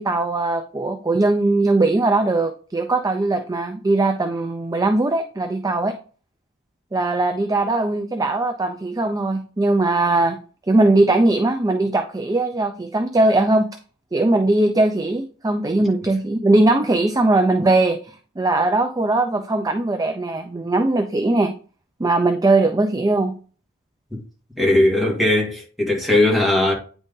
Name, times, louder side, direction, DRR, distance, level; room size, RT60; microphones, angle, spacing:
voice 1, 0.0-6.0 6.9-10.4 10.7-13.7 14.1-21.5 22.0-23.3, right 2 dB, 15° right, 0.5 m, -20 dB
voice 2, 24.6-26.7, left 1 dB, ahead, 2.1 m, -18 dB
9.2 x 4.0 x 3.7 m
head